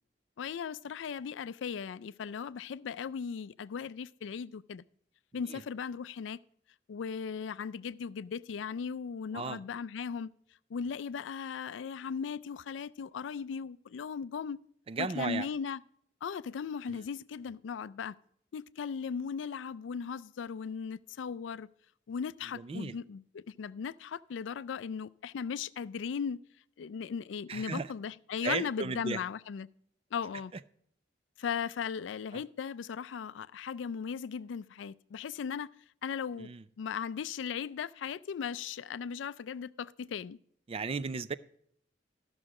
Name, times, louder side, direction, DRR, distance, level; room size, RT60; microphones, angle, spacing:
voice 1, 0.4-4.8 5.3-6.4 6.9-10.3 10.7-14.6 15.0-15.8 16.2-18.1 18.5-21.7 22.1-26.4 26.8-29.7 30.1-30.5 31.4-35.7 36.0-40.4, left 6 dB, 90° left, 0.4 m, -37 dB
voice 2, 14.9-15.5 16.9-17.0 22.5-23.0 27.5-27.9 28.4-29.2 30.5-30.6 32.3-32.4 36.4-36.6 40.7-41.3, right 4 dB, 30° right, 0.4 m, -35 dB
13.0 x 6.3 x 4.8 m
head